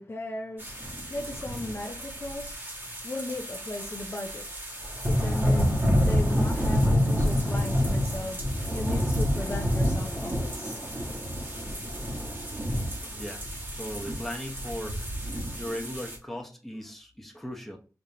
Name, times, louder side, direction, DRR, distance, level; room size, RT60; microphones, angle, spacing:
voice 1, 0.0-4.6 5.1-8.4 8.7-10.8, left 2 dB, 35° left, 0.6 m, -37 dB
sound 1, 0.6-16.2, equal, 30° right, 1.4 m, -28 dB
voice 2, 13.0-13.5 13.7-15.0 15.6-17.8, equal, 5° left, 1.0 m, -37 dB
5.2 x 3.0 x 2.9 m
wide cardioid pair, 115°, 7 cm